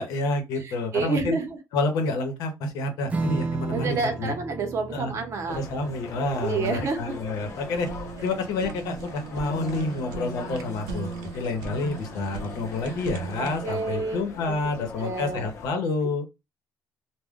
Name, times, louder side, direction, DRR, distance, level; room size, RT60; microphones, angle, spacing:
voice 1, 0.0-1.4 1.7-4.3 4.9-5.1 5.5-7.9 8.2-16.3, left 3 dB, 80° left, 0.8 m, -29 dB
voice 2, 0.6-1.6 3.7-5.6 6.4-7.1 13.4-15.5, right 4 dB, 45° right, 0.8 m, -29 dB
Strum, 3.1-10.0, right 3 dB, 20° right, 0.3 m, -35 dB
sound 1, 5.5-15.7, left 4 dB, 50° left, 0.7 m, -41 dB
Fire, 7.3-13.6, right 4 dB, 80° right, 0.6 m, -38 dB
2.3 x 2.2 x 3.5 m
cardioid pair, 140°, 7 cm